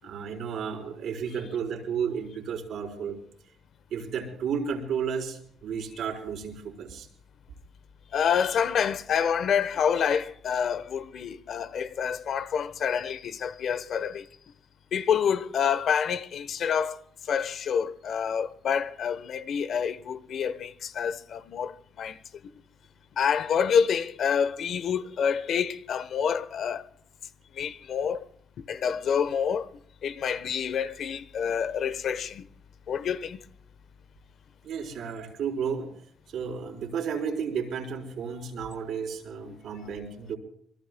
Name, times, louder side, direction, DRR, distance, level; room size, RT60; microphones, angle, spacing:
voice 1, 0.0-3.2 3.9-7.1 34.6-35.9 36.3-40.4, right 6 dB, 75° right, 4.6 m, -32 dB
voice 2, 8.1-14.3 14.9-17.0 17.3-22.2 23.2-26.8 27.6-28.2 28.7-29.7 30.0-32.4 32.9-33.4, left 7 dB, 65° left, 1.0 m, -27 dB
27.5 x 21.5 x 2.3 m
cardioid pair, 90°, 0 cm